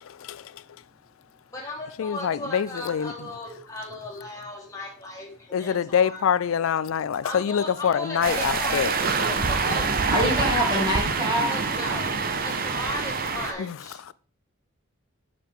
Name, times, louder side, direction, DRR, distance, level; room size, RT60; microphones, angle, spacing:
voice 1, 0.0-0.6 2.0-3.1 5.5-8.9 13.6-13.8 14.1-14.2, left 7 dB, 70° left, 0.4 m, -25 dB
voice 2, 1.5-6.2 7.2-10.5 11.5-14.0, left 1 dB, 15° left, 1.9 m, -36 dB
sound 1, 8.2-13.5, right 4 dB, 45° right, 0.8 m, -26 dB
voice 3, 10.1-11.5, equal, 20° right, 2.8 m, -24 dB
8.0 x 6.6 x 3.7 m
head